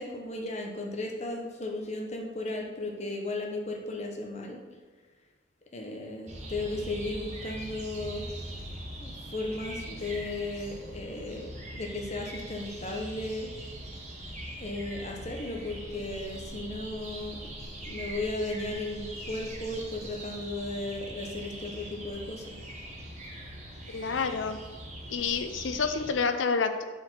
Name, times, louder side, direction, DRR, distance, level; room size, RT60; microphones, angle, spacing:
voice 1, 0.0-4.6 5.7-8.2 9.0-13.5 14.6-22.6, left 2 dB, 35° left, 1 dB, 0.9 m, -35 dB
sound 1, 6.3-26.1, right 1 dB, 35° right, 1.1 m, -42 dB
voice 2, 23.9-24.6 25.1-26.8, left 5 dB, 75° left, 9 dB, 0.5 m, -28 dB
5.0 x 4.3 x 6.0 m, 1.3 s
head